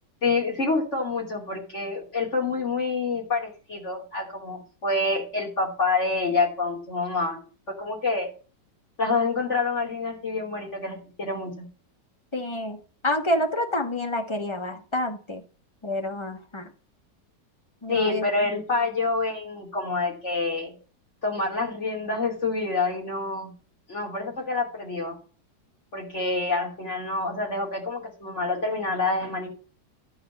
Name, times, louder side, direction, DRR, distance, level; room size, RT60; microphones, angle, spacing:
voice 1, 0.2-8.3 9.0-11.7 17.9-20.7 21.2-23.5 23.9-25.2 25.9-29.5, left 3 dB, 40° left, -2 dB, 3.0 m, -27 dB
voice 2, 12.3-12.8 13.0-15.4 15.8-16.7 17.8-18.3, left 1 dB, 20° left, 5 dB, 1.1 m, -28 dB
11.5 x 4.2 x 7.0 m, 0.37 s
omnidirectional pair, 1.9 m